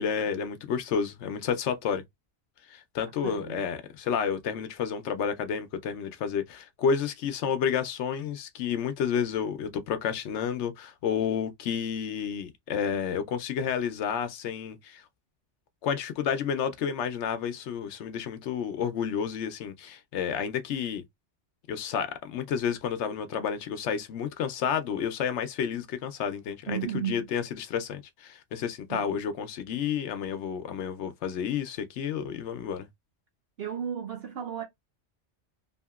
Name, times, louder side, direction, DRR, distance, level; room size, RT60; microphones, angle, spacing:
voice 1, 0.0-2.0 2.7-15.0 15.8-21.0 21.7-32.9, left 7 dB, 75° left, 0.9 m, -30 dB
voice 2, 3.2-3.6 26.7-27.2 28.9-29.2 33.6-34.6, right 9 dB, 60° right, 0.8 m, -34 dB
2.7 x 2.7 x 2.3 m
omnidirectional pair, 1.2 m